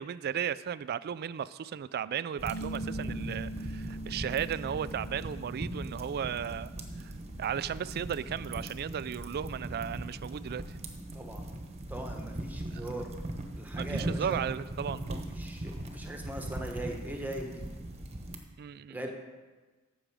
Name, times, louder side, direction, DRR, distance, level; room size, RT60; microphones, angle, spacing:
voice 1, 0.0-6.7 7.4-10.6 12.7-12.8 13.8-15.2 18.6-19.1, right 8 dB, 45° right, 17 dB, 0.3 m, -35 dB
sound 1, 2.4-18.4, right 1 dB, 30° right, 1.1 m, -39 dB
Bass guitar, 2.5-8.8, right 1 dB, 75° left, 0.8 m, -44 dB
voice 2, 11.1-11.4 11.9-13.1 13.6-14.4 15.4-17.6 18.9-19.1, right 1 dB, 10° right, 2 dB, 1.2 m, -40 dB
14.0 x 6.3 x 4.8 m, 1.3 s
head